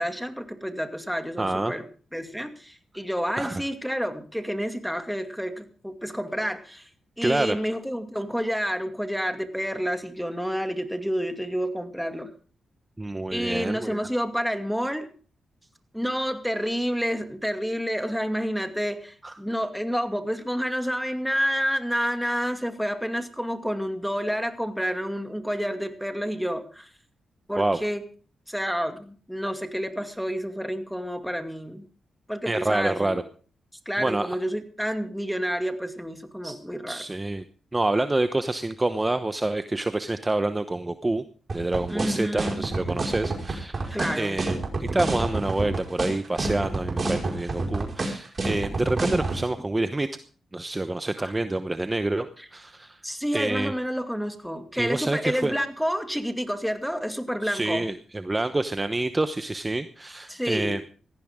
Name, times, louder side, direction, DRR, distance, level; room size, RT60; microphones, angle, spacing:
voice 1, 0.0-1.8 2.1-6.9 7.2-12.3 13.3-15.1 15.9-26.9 27.5-28.0 28.5-31.9 32.3-33.2 33.9-37.0 41.9-42.7 43.9-44.4 51.2-51.3 52.4-52.5 53.0-57.9 60.3-60.8, equal, ahead, 7 dB, 2.3 m, -29 dB
voice 2, 1.4-1.7 3.4-3.6 7.2-7.6 13.0-14.0 19.2-19.3 27.6-27.8 32.4-33.2 34.0-34.4 36.4-36.5 36.9-37.4 37.7-41.2 41.5-50.1 50.5-53.0 53.3-53.7 54.8-55.5 57.4-60.8, right 2 dB, 20° right, 10 dB, 1.0 m, -27 dB
sound 1, 41.5-49.4, right 3 dB, 45° right, 5.2 m, -27 dB
18.0 x 14.5 x 3.7 m, 0.42 s
cardioid pair, 65°, 0 cm